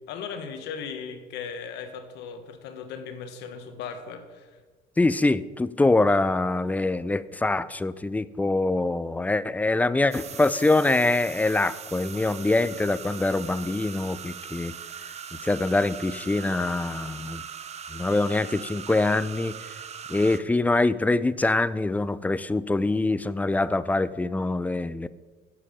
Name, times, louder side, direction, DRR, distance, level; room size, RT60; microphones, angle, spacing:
voice 1, 0.1-4.5, left 6 dB, 85° left, 7 dB, 1.3 m, -37 dB
voice 2, 5.0-14.7 15.4-17.4 17.9-19.6 20.1-25.1, left 2 dB, 10° left, 16 dB, 0.3 m, -24 dB
sound 1, 10.1-20.4, right 7 dB, 40° right, 0.6 m, -40 dB
9.9 x 7.7 x 5.0 m, 1.4 s
cardioid pair, 110°, 17 cm